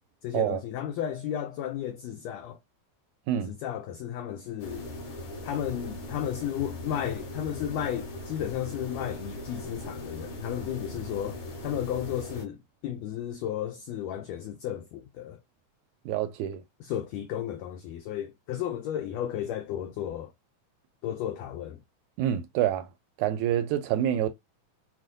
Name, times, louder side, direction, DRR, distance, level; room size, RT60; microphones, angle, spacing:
voice 1, 0.2-2.6 3.4-4.9 5.4-15.4 16.8-20.3 21.0-21.8, left 10 dB, 85° left, 1.5 m, -33 dB
sound 1, 4.6-12.5, left 1 dB, 70° left, 3.5 m, -39 dB
voice 2, 16.1-16.6 22.2-22.9 23.2-24.3, right 11 dB, 80° right, 1.8 m, -27 dB
6.2 x 2.2 x 2.5 m
omnidirectional pair, 3.5 m